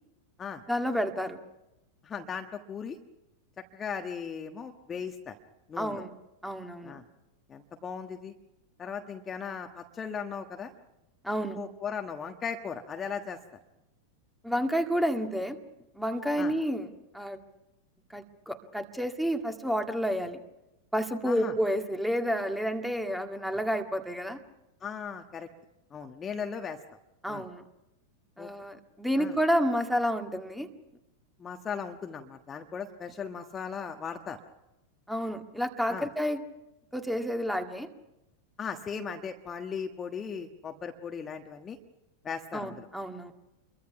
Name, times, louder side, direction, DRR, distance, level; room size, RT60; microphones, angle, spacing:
voice 1, 0.7-1.4 5.8-6.2 6.4-7.0 11.2-11.6 14.4-15.6 16.0-16.9 17.1-17.4 18.1-20.4 20.9-24.4 27.2-27.6 28.4-30.7 35.1-36.4 36.9-37.9 42.5-43.3, equal, ahead, 6 dB, 1.9 m, -30 dB
voice 2, 2.0-3.0 3.7-5.4 5.7-6.0 6.8-7.0 7.5-8.3 8.8-10.7 11.5-13.4 16.4-16.5 21.2-21.5 24.8-25.5 25.9-26.8 27.3-27.4 28.4-28.5 29.2-29.4 31.4-34.4 35.9-36.1 38.6-41.8 42.2-42.9, left 6 dB, 20° left, 5 dB, 1.4 m, -37 dB
28.0 x 23.0 x 5.9 m, 0.94 s
figure-of-eight pair, 90°, 0 cm